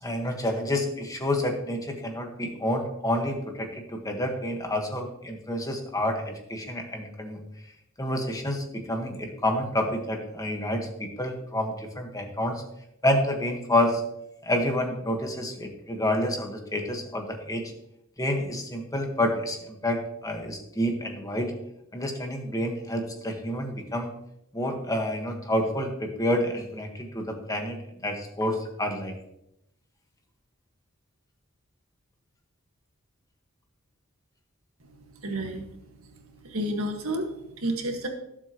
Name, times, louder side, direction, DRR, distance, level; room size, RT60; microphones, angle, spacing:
voice 1, 0.0-7.4 8.0-12.6 13.0-14.0 14.4-17.7 18.2-21.5 21.9-24.1 24.5-27.8 28.0-29.1, left 1 dB, 15° left, 3 dB, 1.5 m, -28 dB
voice 2, 35.1-35.7 36.4-38.1, right 1 dB, 80° right, 3 dB, 1.8 m, -30 dB
18.0 x 7.7 x 3.1 m, 0.82 s
head